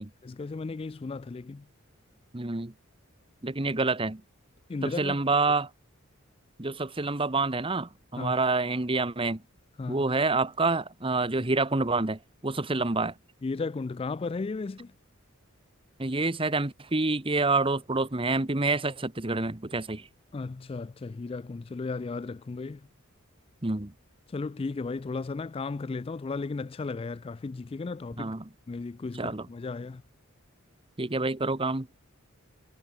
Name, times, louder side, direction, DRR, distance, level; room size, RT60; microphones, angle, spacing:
voice 1, 0.0-1.7 4.7-5.2 8.1-8.3 9.8-10.1 13.4-14.9 20.3-22.9 24.3-28.3 28.7-30.0, left 3 dB, 25° left, 0.3 m, -35 dB
voice 2, 2.3-2.7 3.4-4.2 4.8-5.7 6.6-9.4 9.9-13.1 16.0-20.1 23.6-23.9 28.2-28.5 29.2-29.5 31.0-32.0, right 3 dB, 25° right, 1.1 m, -27 dB
head